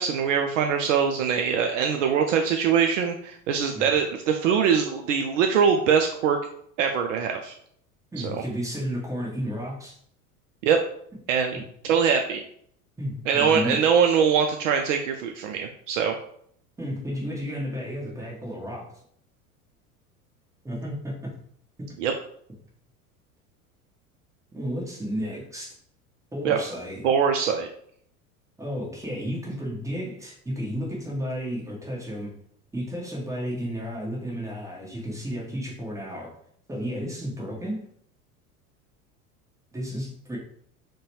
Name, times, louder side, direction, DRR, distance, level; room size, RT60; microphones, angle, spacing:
voice 1, 0.0-6.4 6.8-7.5 8.2-8.3 10.6-10.8 11.3-11.6 11.9-12.4 13.3-16.2 22.0-22.1 26.4-26.6 27.0-27.7, right 7 dB, 60° right, 4 dB, 0.5 m, -22 dB
voice 2, 8.1-10.0 13.0-13.8 16.8-18.9 20.6-21.3 21.8-21.9 24.5-25.7 26.3-27.0 28.6-32.3 32.7-36.3 36.7-37.9 39.7-40.4, equal, 5° right, -4 dB, 1.1 m, -32 dB
3.8 x 2.2 x 2.9 m, 0.64 s
figure-of-eight pair, 80°, 44 cm